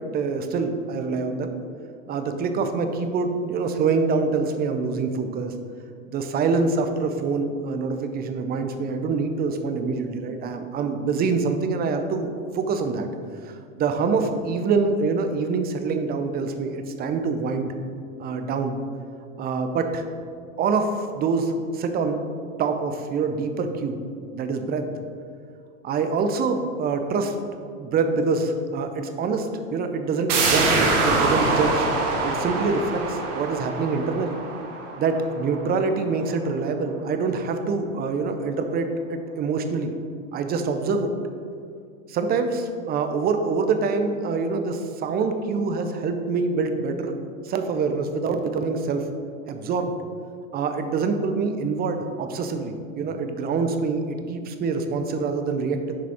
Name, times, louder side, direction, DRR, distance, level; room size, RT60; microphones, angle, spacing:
voice 1, 0.0-1.6 2.1-5.5 6.1-13.1 13.4-17.7 18.2-18.8 19.4-20.1 20.6-22.2 22.6-24.0 24.3-24.9 25.8-27.3 27.8-31.9 32.2-34.4 35.0-40.0 40.3-41.1 42.1-47.1 47.4-49.1 49.5-49.9 50.5-55.9, right 4 dB, 25° right, 7 dB, 0.6 m, -25 dB
sound 1, 30.3-35.8 36.1-36.2, right 3 dB, 60° right, 1.6 m, -24 dB
7.2 x 5.0 x 4.3 m, 2.3 s
hypercardioid pair, 110°, 41 cm